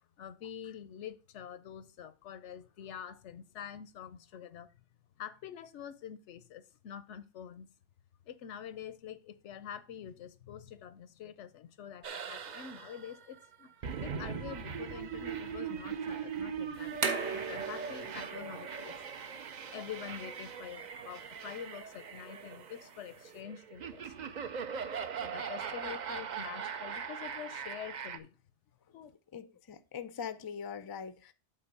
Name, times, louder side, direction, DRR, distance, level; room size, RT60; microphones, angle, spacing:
voice 1, 0.2-4.7 5.2-7.7 8.3-13.7 14.0-17.0 17.3-18.9 19.7-24.3 25.2-28.3 28.9-29.1, left 9 dB, 90° left, 1.0 m, -46 dB
sound 1, 12.0-28.2, right 7 dB, 50° right, 0.6 m, -41 dB
sound 2, 16.7-23.4, right 5 dB, 75° right, 1.5 m, -41 dB
voice 2, 29.3-31.3, left 7 dB, 35° left, 0.3 m, -42 dB
8.0 x 4.1 x 5.2 m
omnidirectional pair, 1.2 m